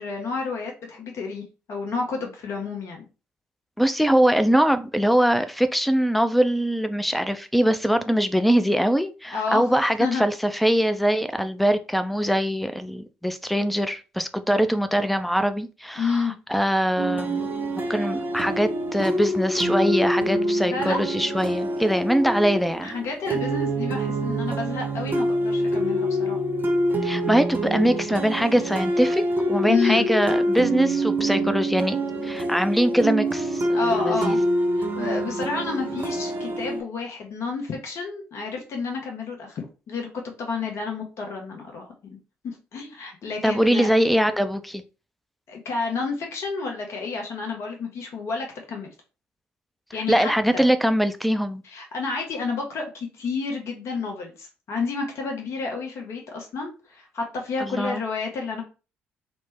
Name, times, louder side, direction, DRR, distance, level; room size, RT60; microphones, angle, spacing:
voice 1, 0.0-3.0 9.3-9.6 10.0-10.2 16.0-16.3 20.7-21.0 22.8-26.4 29.7-30.1 33.7-34.4 34.8-40.1 40.4-42.2 42.4-43.9 45.5-48.9 49.9-50.6 51.6-58.6, left 4 dB, 55° left, 0.8 m, -30 dB
voice 2, 3.8-17.5 17.9-22.9 27.0-32.0 32.2-34.4 43.4-44.8 50.1-51.6 57.6-58.0, equal, ahead, 0.4 m, -22 dB
sound 1, 17.0-36.8, right 1 dB, 35° right, 0.7 m, -26 dB
3.2 x 2.0 x 3.2 m
figure-of-eight pair, 45°, 6 cm